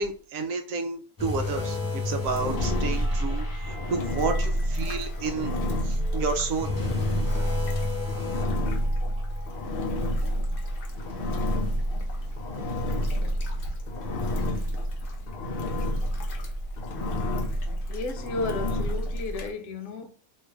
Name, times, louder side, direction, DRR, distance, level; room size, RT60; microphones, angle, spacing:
voice 1, 0.0-5.5 5.8-6.7 11.2-13.7, right 4 dB, 75° right, 1.0 m, -32 dB
sound 1, 1.2-12.6 13.0-13.2 13.8-13.9, left 3 dB, 20° left, 0.6 m, -35 dB
Engine, 2.2-19.5, equal, 55° left, 0.7 m, -29 dB
voice 2, 17.9-20.1, left 3 dB, 70° left, 1.0 m, -33 dB
3.0 x 2.4 x 3.2 m
omnidirectional pair, 1.5 m